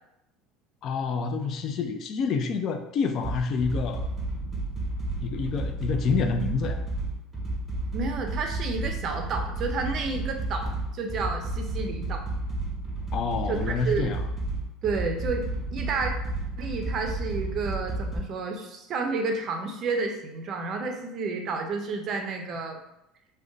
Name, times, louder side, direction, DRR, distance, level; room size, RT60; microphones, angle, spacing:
voice 1, 0.8-4.1 5.2-6.8 13.1-14.2, left 4 dB, 45° left, 7 dB, 0.3 m, -28 dB
sound 1, 3.2-18.2, right 2 dB, 10° right, 0.9 m, -32 dB
voice 2, 7.9-12.2 13.5-14.1 14.8-16.1 16.6-22.8, right 4 dB, 40° right, 4 dB, 0.4 m, -31 dB
2.5 x 2.2 x 3.7 m, 0.85 s
cardioid pair, 135°, 0 cm